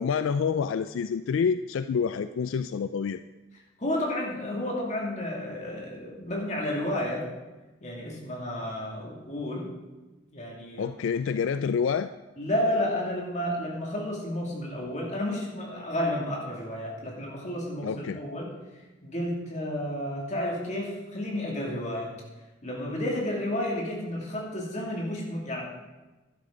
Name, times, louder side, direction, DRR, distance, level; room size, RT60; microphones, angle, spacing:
voice 1, 0.0-3.2 10.8-12.1 17.8-18.2, left 6 dB, 75° left, 11 dB, 0.3 m, -27 dB
voice 2, 3.8-7.3 7.8-9.7 10.3-11.0 12.4-18.5 19.0-22.1 22.6-25.6, left 1 dB, 35° left, -2 dB, 2.4 m, -31 dB
11.5 x 11.0 x 3.8 m, 1.1 s
head